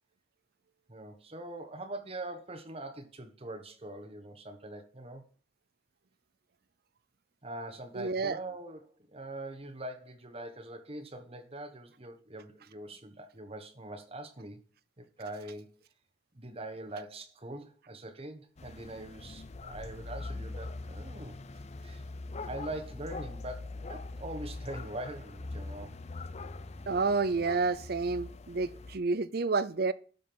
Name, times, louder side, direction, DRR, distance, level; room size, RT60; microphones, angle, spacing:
voice 1, 0.9-5.2 7.4-14.6 15.0-15.7 16.3-21.4 21.8-22.0 22.4-25.9, right 1 dB, 30° right, 1.2 m, -43 dB
voice 2, 7.9-8.4 26.9-29.9, right 4 dB, 55° right, 0.6 m, -29 dB
sound 1, 18.6-29.0, left 2 dB, 35° left, 0.6 m, -42 dB
12.0 x 5.4 x 6.0 m
head